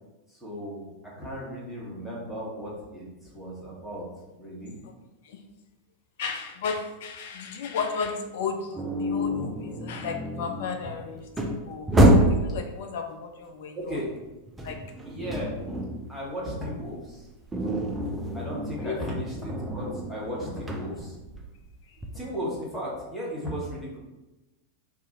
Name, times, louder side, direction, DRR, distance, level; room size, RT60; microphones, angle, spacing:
voice 1, 0.3-0.9 1.2-4.0 4.4-4.7 13.7-14.1 15.1-15.5 16.1-17.3 18.3-21.2 22.1-24.0, equal, 5° left, -6 dB, 1.2 m, -35 dB
voice 2, 6.2-14.0 14.6-14.8 18.8-19.0 21.9-22.0, left 5 dB, 55° left, 6 dB, 0.3 m, -34 dB
sound 1, 8.8-12.5 14.0-16.1 16.4-22.2, right 1 dB, 10° right, 0.4 m, -26 dB
2.6 x 2.4 x 4.0 m, 1.0 s
figure-of-eight pair, 90°, 0 cm